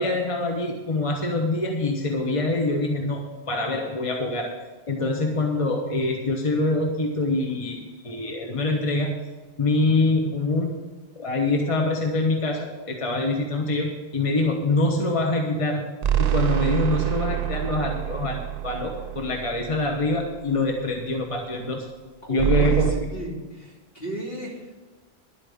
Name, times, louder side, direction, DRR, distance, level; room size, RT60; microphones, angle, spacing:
voice 1, 0.0-4.6 4.9-9.2 9.6-10.8 11.2-15.9 16.2-21.9 22.3-22.9, left 2 dB, 30° left, 2 dB, 1.2 m, -25 dB
sound 1, 16.0-20.5 22.4-22.9, right 13 dB, 50° right, 0.5 m, -26 dB
voice 2, 22.2-24.7, right 1 dB, 60° left, -3 dB, 3.2 m, -35 dB
11.5 x 8.6 x 6.9 m, 1.3 s
omnidirectional pair, 1.1 m